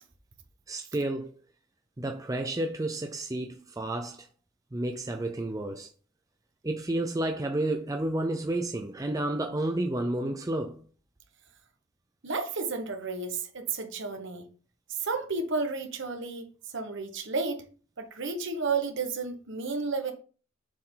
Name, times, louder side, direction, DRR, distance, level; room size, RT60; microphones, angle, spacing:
voice 1, 0.7-1.4 2.0-4.3 4.7-5.9 6.6-10.8, right 1 dB, 15° right, 0.5 m, -31 dB
voice 2, 12.2-14.4 15.0-16.4 16.7-17.6 18.0-20.1, right 4 dB, 60° right, 1.3 m, -32 dB
7.4 x 4.6 x 3.8 m
head